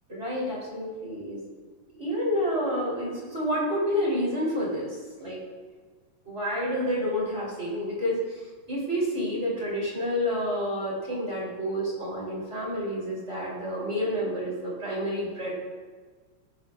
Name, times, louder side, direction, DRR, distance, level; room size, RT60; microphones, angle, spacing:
voice 1, 0.1-1.4 2.0-5.4 6.2-8.2 8.7-15.5, equal, 25° right, -5 dB, 3.1 m, -29 dB
18.0 x 8.7 x 2.4 m, 1.5 s
omnidirectional pair, 3.4 m